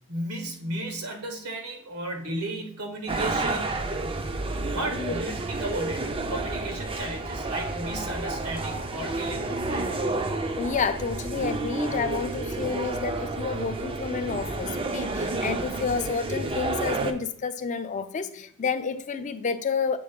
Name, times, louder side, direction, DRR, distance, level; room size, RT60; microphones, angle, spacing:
voice 1, 0.1-3.7 4.6-10.3, right 1 dB, 90° right, 3 dB, 1.5 m, -34 dB
sound 1, 3.1-17.1, right 2 dB, 25° right, 0.4 m, -30 dB
voice 2, 10.6-20.0, left 5 dB, 35° left, 10 dB, 0.4 m, -30 dB
7.6 x 3.4 x 3.6 m, 0.65 s
head